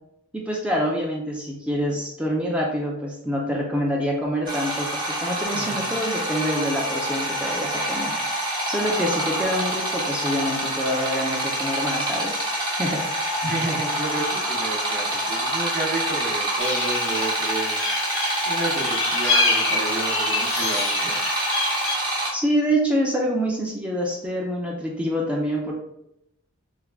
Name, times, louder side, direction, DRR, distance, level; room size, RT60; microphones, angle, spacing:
voice 1, 0.3-8.1 8.7-13.0 22.3-25.7, equal, 5° right, -3 dB, 0.4 m, -26 dB
sound 1, 4.5-22.3, right 1 dB, 20° right, 1.0 m, -26 dB
voice 2, 13.4-17.8 18.4-21.2, right 2 dB, 55° right, -1 dB, 0.9 m, -31 dB
sound 2, 16.6-21.9, left 3 dB, 70° left, 0.7 m, -27 dB
3.5 x 2.2 x 3.3 m, 0.81 s
head